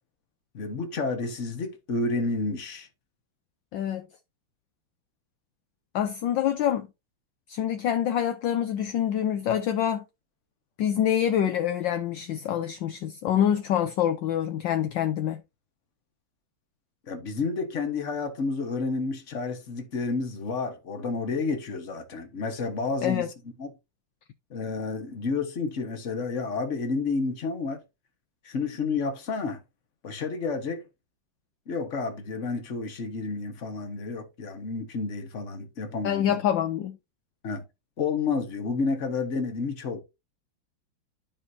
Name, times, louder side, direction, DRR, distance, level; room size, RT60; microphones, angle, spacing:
voice 1, 0.5-2.9 17.1-23.3 23.6-23.7 24.5-27.8 28.4-29.6 30.0-30.8 31.7-36.4 37.4-37.6 38.0-40.0, left 4 dB, 40° left, 1.6 m, -30 dB
voice 2, 3.7-4.1 5.9-6.9 7.5-10.0 10.8-15.4 23.0-23.3 36.0-37.0, left 10 dB, 70° left, 1.3 m, -26 dB
12.5 x 4.8 x 2.7 m
omnidirectional pair, 2.3 m